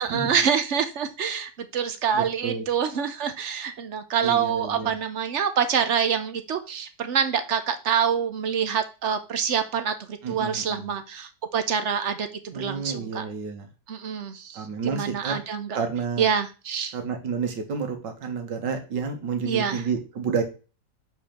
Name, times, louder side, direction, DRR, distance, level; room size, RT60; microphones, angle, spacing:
voice 1, 0.0-13.2 13.9-14.7 14.9-15.7 16.2-17.0 19.5-19.8, right 7 dB, 60° right, 0.8 m, -26 dB
voice 2, 2.1-2.6 4.2-5.0 10.2-10.9 12.5-13.7 14.5-15.4 15.7-16.3 16.9-20.4, right 5 dB, 90° right, 1.9 m, -30 dB
5.2 x 4.3 x 5.8 m
omnidirectional pair, 1.9 m